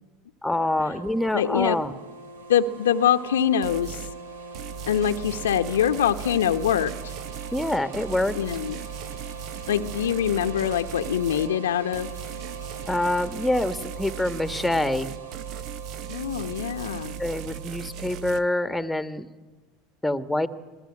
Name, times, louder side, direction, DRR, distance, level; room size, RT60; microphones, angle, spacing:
voice 1, 0.4-1.9 7.5-8.3 12.9-15.1 17.2-19.3 20.0-20.5, left 1 dB, 5° left, 11 dB, 1.5 m, -26 dB
sound 1, 1.0-18.4, right 5 dB, 90° right, 1.9 m, -41 dB
voice 2, 1.3-1.8 2.5-4.0 4.9-7.1 8.3-8.8 9.7-12.1 16.1-17.2, left 9 dB, 85° left, 8 dB, 1.0 m, -24 dB
sound 2, 3.6-4.2 4.5-11.5 11.9-18.4, right 8 dB, 55° right, 1.0 m, -38 dB
26.5 x 18.5 x 9.8 m, 1.3 s
hypercardioid pair, 85°, 0 cm